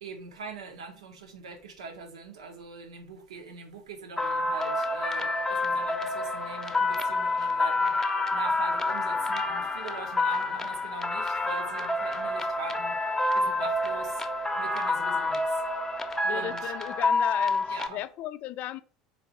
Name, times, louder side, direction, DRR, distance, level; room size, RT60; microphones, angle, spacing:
voice 1, 0.0-14.2 14.5-15.6 16.3-16.7 17.7-18.0, right 5 dB, 75° right, 0.8 m, -42 dB
sound 1, 4.2-17.9, left 2 dB, 15° left, 0.7 m, -28 dB
voice 2, 16.2-18.8, left 13 dB, 50° left, 0.4 m, -35 dB
4.2 x 3.1 x 4.0 m
figure-of-eight pair, 70°, 3 cm